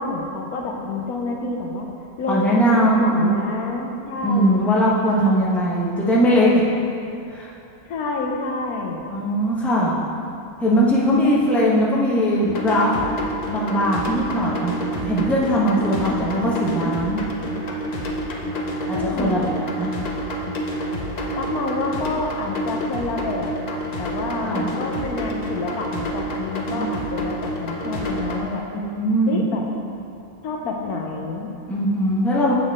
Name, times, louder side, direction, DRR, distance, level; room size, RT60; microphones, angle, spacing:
voice 1, 0.0-1.9 2.2-4.9 7.9-9.1 18.9-19.5 21.4-28.6 29.3-29.6 30.4-31.5, left 3 dB, 80° left, 1 dB, 1.2 m, -28 dB
voice 2, 2.3-3.3 4.2-6.6 7.3-7.5 9.1-9.9 10.6-13.1 13.4-14.7 15.0-17.2 18.9-19.9 24.4-24.8 26.7-26.9 28.7-29.5 31.7-32.5, equal, ahead, -6 dB, 0.9 m, -20 dB
sound 1, 12.4-28.4, right 1 dB, 50° left, 0.5 m, -28 dB
8.1 x 6.5 x 3.6 m, 2.6 s
omnidirectional pair, 1.6 m